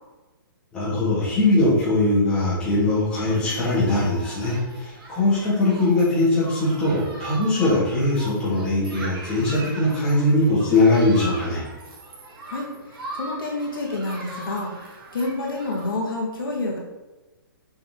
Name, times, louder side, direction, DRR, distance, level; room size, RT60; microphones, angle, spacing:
voice 1, 0.7-11.6, left 2 dB, 5° left, -10 dB, 2.1 m, -21 dB
Human group actions, 3.3-15.9, right 1 dB, 90° right, 2.0 m, -40 dB
voice 2, 12.5-16.8, left 2 dB, 75° left, -1 dB, 2.0 m, -29 dB
7.0 x 4.7 x 3.8 m, 1.2 s
hypercardioid pair, 175°, 12 cm